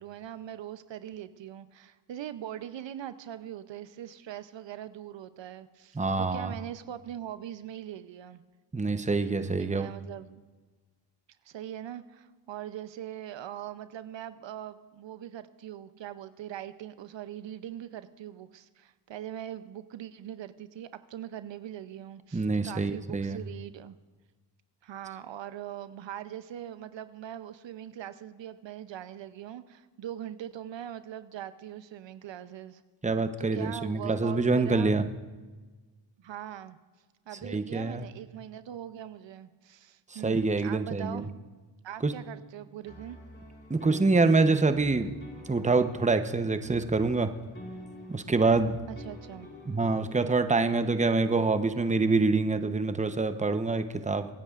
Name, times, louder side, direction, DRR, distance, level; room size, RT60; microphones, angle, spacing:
voice 1, 0.0-8.4 9.6-10.4 11.4-24.0 24.8-32.8 33.5-34.9 36.2-36.8 37.3-41.3 41.8-43.2 48.9-49.5, right 11 dB, 75° right, 12 dB, 0.6 m, -41 dB
voice 2, 5.9-6.5 8.7-9.9 22.3-23.4 33.0-35.1 37.4-38.1 40.1-41.3 42.0-42.1 43.7-45.1 45.5-47.3 48.1-48.7 49.7-54.3, right 3 dB, 15° right, 9 dB, 0.8 m, -26 dB
sound 1, 42.8-50.1, left 1 dB, 30° left, 3.4 m, -47 dB
24.5 x 9.8 x 2.4 m, 1.3 s
cardioid pair, 60°, 45 cm